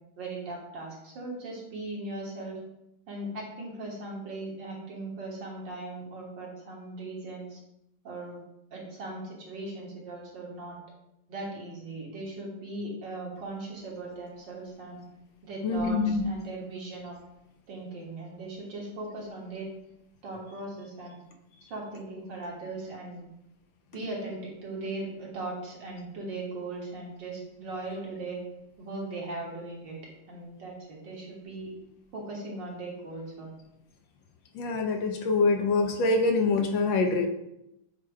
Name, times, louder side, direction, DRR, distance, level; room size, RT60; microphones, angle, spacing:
voice 1, 0.2-2.6 3.1-7.6 8.0-8.4 8.7-10.8 11.3-15.0 15.4-17.1 17.7-19.7 20.2-21.1 21.7-23.2 23.9-28.4 28.8-30.0 30.3-31.7 32.1-33.5, right 2 dB, 60° right, -3 dB, 2.2 m, -38 dB
voice 2, 15.6-16.2 34.5-37.3, left 3 dB, 70° left, 4 dB, 1.3 m, -25 dB
8.2 x 2.9 x 4.6 m, 0.84 s
omnidirectional pair, 2.3 m